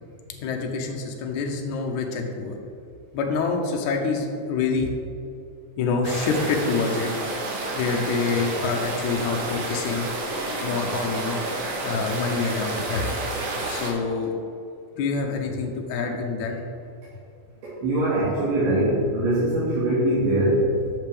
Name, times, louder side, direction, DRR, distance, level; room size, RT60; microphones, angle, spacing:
voice 1, 0.4-2.6 3.1-4.9 5.8-7.1 7.7-10.0 10.6-11.4 11.8-13.1 13.6-14.3 15.0-16.7, left 4 dB, 85° left, 2 dB, 1.6 m, -26 dB
sound 1, 6.0-13.9, right 2 dB, 65° right, 2.6 m, -30 dB
voice 2, 17.6-20.6, right 1 dB, 80° right, -12 dB, 4.2 m, -22 dB
11.5 x 6.7 x 3.5 m, 2.6 s
omnidirectional pair, 4.4 m